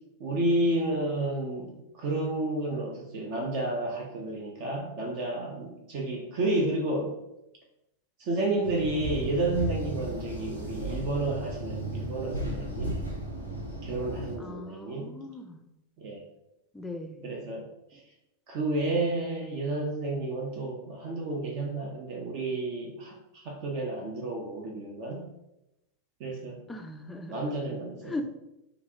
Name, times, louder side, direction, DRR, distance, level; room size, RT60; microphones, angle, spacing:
voice 1, 0.2-7.1 8.2-13.0 13.8-15.2 16.0-16.2 17.2-18.0 18.5-23.1 23.4-25.2 26.2-26.6 27.3-28.2, right 2 dB, 45° right, 0 dB, 0.5 m, -31 dB
sound 1, 8.6-14.4, right 1 dB, 85° right, 0.6 m, -35 dB
voice 2, 14.4-15.6 16.7-17.2 26.7-27.4 28.0-28.2, left 2 dB, 10° left, 6 dB, 0.3 m, -38 dB
3.2 x 2.5 x 2.6 m, 0.88 s
figure-of-eight pair, 90°, 0 cm